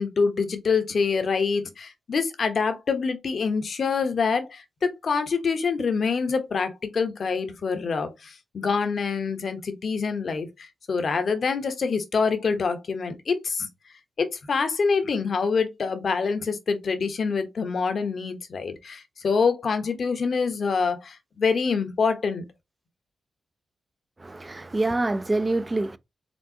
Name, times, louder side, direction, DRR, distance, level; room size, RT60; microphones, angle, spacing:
voice 1, 0.0-13.7 14.2-22.4, left 5 dB, 60° left, 0.9 m, -26 dB
voice 2, 24.2-26.0, right 2 dB, 25° right, 0.5 m, -26 dB
4.5 x 3.6 x 2.8 m
cardioid pair, 60°, 0 cm